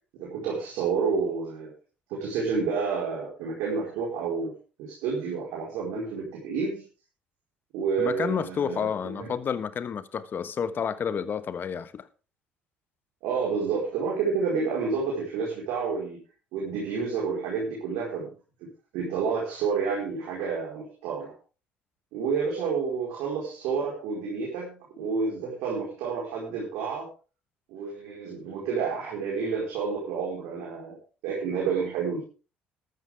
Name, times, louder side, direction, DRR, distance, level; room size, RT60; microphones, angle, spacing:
voice 1, 0.2-1.7 2.1-4.5 4.8-6.9 7.7-9.3 13.2-16.2 16.5-18.3 18.9-21.3 22.1-27.1 27.7-31.0 31.2-32.2, right 5 dB, 70° right, 4.7 m, -29 dB
voice 2, 8.0-12.1, left 7 dB, 45° left, 1.3 m, -30 dB
14.0 x 12.5 x 3.6 m
hypercardioid pair, 55°, 5 cm